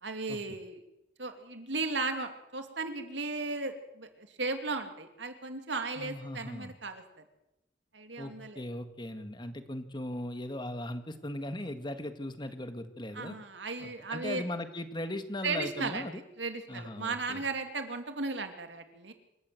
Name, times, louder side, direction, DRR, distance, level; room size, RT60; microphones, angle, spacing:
voice 1, 0.0-0.8 1.2-7.0 7.9-8.6 13.1-14.4 15.4-19.1, right 3 dB, 75° right, 7 dB, 2.7 m, -36 dB
voice 2, 6.0-6.7 8.2-13.4 13.8-16.2 16.7-17.4, left 1 dB, 25° left, 9 dB, 1.7 m, -38 dB
27.0 x 14.0 x 7.8 m, 0.88 s
head